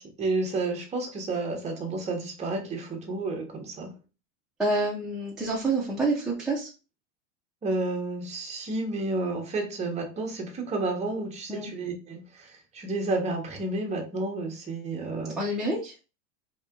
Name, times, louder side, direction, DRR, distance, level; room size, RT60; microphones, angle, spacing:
voice 1, 0.0-3.9 7.6-15.4, right 2 dB, 15° right, 2 dB, 1.0 m, -31 dB
voice 2, 4.6-6.7 11.5-11.7 15.4-15.9, right 2 dB, ahead, -5 dB, 0.5 m, -27 dB
4.2 x 2.9 x 3.6 m, 0.32 s
supercardioid pair, 155°, 38 cm